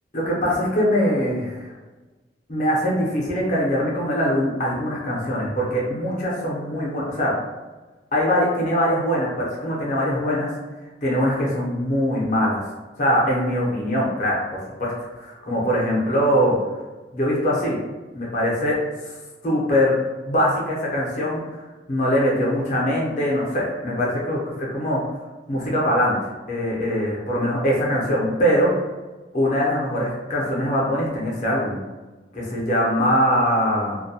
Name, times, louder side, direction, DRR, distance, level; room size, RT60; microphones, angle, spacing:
voice 1, 0.1-1.7 2.5-7.4 8.1-10.5 11.0-12.6 13.0-16.6 17.1-17.8 18.1-19.1 19.4-19.9 20.2-21.4 21.9-25.0 25.5-26.2 26.5-28.7 29.3-31.8 32.3-34.0, equal, 40° left, -4 dB, 0.6 m, -22 dB
2.3 x 2.1 x 2.7 m, 1.2 s
head